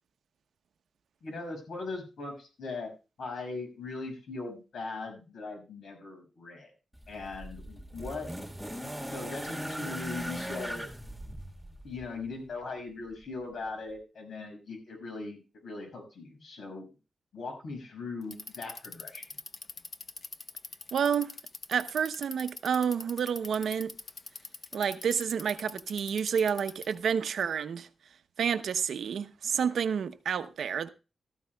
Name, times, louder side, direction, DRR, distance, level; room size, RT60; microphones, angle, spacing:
voice 1, 1.2-2.9 3.2-6.7 7.1-8.3 9.1-10.9 11.8-16.9 17.3-19.3, left 3 dB, 85° left, 6.0 m, -39 dB
sound 1, 6.9-12.2 13.2-13.3, equal, ahead, 1.6 m, -39 dB
Bicycle, 18.2-27.0, left 4 dB, 40° left, 0.8 m, -43 dB
voice 2, 20.9-21.3 21.7-23.9 24.7-27.9 28.4-30.9, right 7 dB, 90° right, 0.8 m, -29 dB
16.0 x 14.0 x 2.3 m
wide cardioid pair, 145°, 0 cm